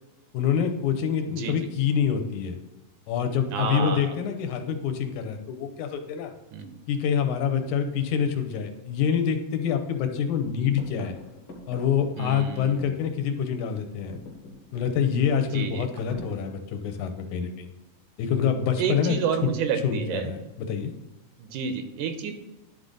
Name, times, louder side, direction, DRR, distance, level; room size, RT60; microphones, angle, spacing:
voice 1, 0.3-2.6 3.1-6.3 6.9-11.1 11.7-14.2 14.7-17.7 18.2-19.2 19.4-19.5 19.8-20.9, left 7 dB, 75° left, 6 dB, 2.1 m, -26 dB
voice 2, 3.5-4.1 6.5-6.8 12.2-13.0 15.5-15.9 18.8-20.3 21.4-22.3, right 6 dB, 85° right, 7 dB, 2.2 m, -30 dB
sound 1, 10.4-13.5 13.8-17.4 18.4-18.9, left 2 dB, 55° left, 1.9 m, -46 dB
11.0 x 3.9 x 3.8 m, 1.0 s
omnidirectional pair, 3.6 m